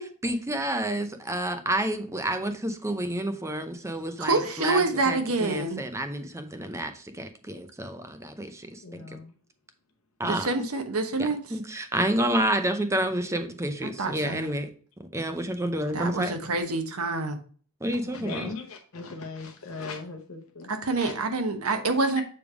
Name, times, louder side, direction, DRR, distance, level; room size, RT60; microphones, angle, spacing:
voice 1, 0.2-9.0 10.2-10.5 11.2-14.7 15.1-16.3 17.8-18.5, right 1 dB, 15° right, 8 dB, 0.6 m, -29 dB
voice 2, 4.2-5.8 10.2-11.4 13.8-14.5 15.9-17.4 20.7-22.2, right 3 dB, 70° right, 7 dB, 1.0 m, -27 dB
voice 3, 8.8-9.3 18.1-20.7 21.0-21.1 22.2-22.3, left 4 dB, 65° left, 2 dB, 1.0 m, -38 dB
7.0 x 3.3 x 4.9 m, 0.43 s
head